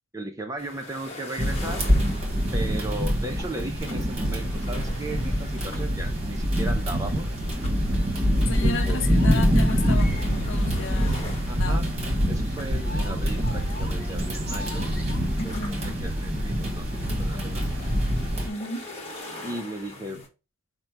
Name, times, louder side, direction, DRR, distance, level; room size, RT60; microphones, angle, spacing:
voice 1, 0.1-1.8 2.5-7.3 8.6-9.1 11.5-11.8 12.3-14.8 15.4-17.9 19.4-20.2, right 1 dB, 15° right, 0.5 m, -36 dB
sound 1, 0.6-20.3, left 2 dB, 30° left, 1.1 m, -44 dB
sound 2, 1.4-18.5, equal, 30° right, 1.2 m, -25 dB
voice 2, 8.4-11.2 11.6-11.8 15.4-15.8 18.5-18.9, left 2 dB, 65° left, 0.7 m, -33 dB
sound 3, 8.7-10.4 11.1-15.6 16.9-18.7 19.8-20.2, left 1 dB, 45° left, 1.0 m, -44 dB
5.3 x 2.2 x 4.5 m
head